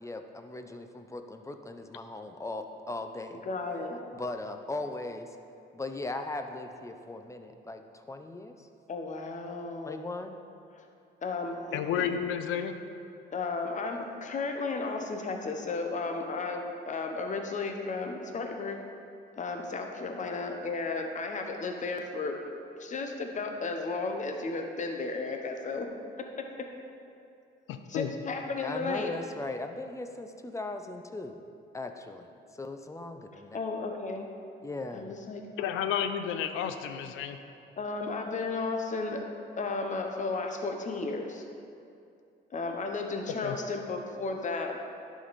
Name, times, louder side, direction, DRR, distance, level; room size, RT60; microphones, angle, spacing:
voice 1, 0.0-3.4 4.1-5.4 5.7-8.7 9.8-10.4 28.6-31.4 31.7-33.6 34.6-35.1, left 2 dB, 15° left, 6 dB, 0.6 m, -39 dB
voice 2, 3.4-4.0 8.9-10.0 10.7-10.8 11.2-12.1 13.3-18.8 19.4-22.4 22.8-25.9 26.4-26.5 27.9-29.1 33.5-34.3 34.9-35.4 37.8-39.3 39.6-41.4 42.5-44.8, left 3 dB, 40° left, 4 dB, 0.9 m, -34 dB
voice 3, 11.7-12.8 27.7-28.1 35.6-37.4 43.4-43.6, left 8 dB, 90° left, 8 dB, 0.5 m, -31 dB
11.0 x 5.1 x 4.2 m, 2.5 s
cardioid pair, 90°, 20 cm